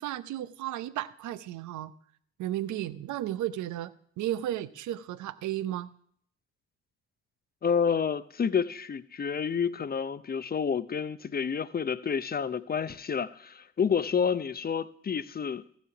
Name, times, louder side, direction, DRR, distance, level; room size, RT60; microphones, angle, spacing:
voice 1, 0.0-1.9 2.4-5.9, right 13 dB, 60° right, 0.7 m, -34 dB
voice 2, 7.6-15.6, left 6 dB, 30° left, 0.6 m, -29 dB
14.5 x 7.2 x 5.8 m
hypercardioid pair, 45°, 33 cm